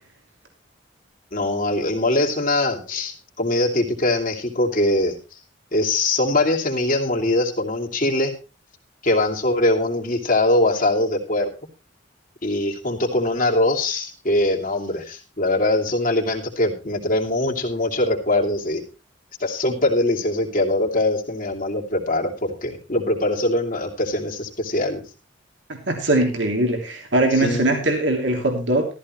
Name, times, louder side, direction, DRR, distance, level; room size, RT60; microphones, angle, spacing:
voice 1, 1.3-5.4 5.7-8.3 9.0-11.5 12.4-18.8 19.4-25.0 27.4-27.8, left 2 dB, 50° left, 1 dB, 2.8 m, -22 dB
voice 2, 25.9-28.9, right 2 dB, 70° right, 2 dB, 3.1 m, -21 dB
14.0 x 14.0 x 3.2 m, 0.31 s
head